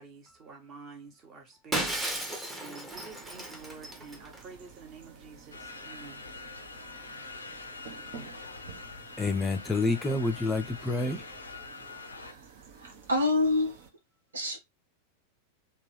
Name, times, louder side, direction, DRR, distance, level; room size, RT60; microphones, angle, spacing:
voice 1, 0.0-6.2, right 4 dB, 30° right, 1.2 m, -49 dB
Shatter, 1.7-4.4, right 1 dB, 10° right, 0.9 m, -34 dB
sound 1, 2.9-13.9, right 6 dB, 50° right, 0.7 m, -52 dB
sound 2, 5.5-12.3, left 4 dB, 75° left, 0.5 m, -44 dB
voice 2, 9.2-11.3 11.8-11.9, left 3 dB, 10° left, 0.5 m, -28 dB
voice 3, 12.1-13.8 14.3-14.6, left 2 dB, 75° right, 1.0 m, -28 dB
3.7 x 2.3 x 3.2 m
figure-of-eight pair, 90°, 0 cm